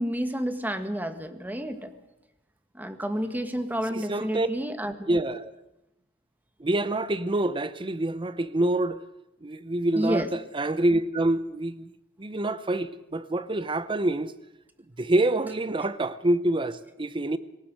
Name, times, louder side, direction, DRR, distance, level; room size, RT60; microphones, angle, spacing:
voice 1, 0.0-1.9 2.7-5.1 9.9-10.3, equal, 10° right, 1.6 m, -30 dB
voice 2, 3.9-4.5 5.1-5.5 6.6-9.0 9.4-11.9 12.2-14.3 15.0-17.4, right 1 dB, 25° right, 0.8 m, -26 dB
19.0 x 18.5 x 8.0 m
head